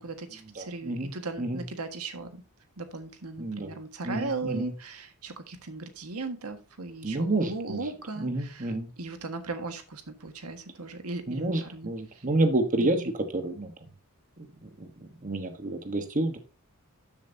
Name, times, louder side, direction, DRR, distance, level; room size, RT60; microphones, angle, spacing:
voice 1, 0.0-2.4 2.8-12.2 12.8-13.1, right 3 dB, 85° right, 1.6 m, -38 dB
voice 2, 0.6-1.1 1.4-1.6 3.4-3.7 4.0-4.7 7.0-7.8 8.2-8.9 11.3-13.7 14.4-16.4, right 2 dB, 35° right, 1.2 m, -29 dB
12.5 x 7.2 x 2.7 m
head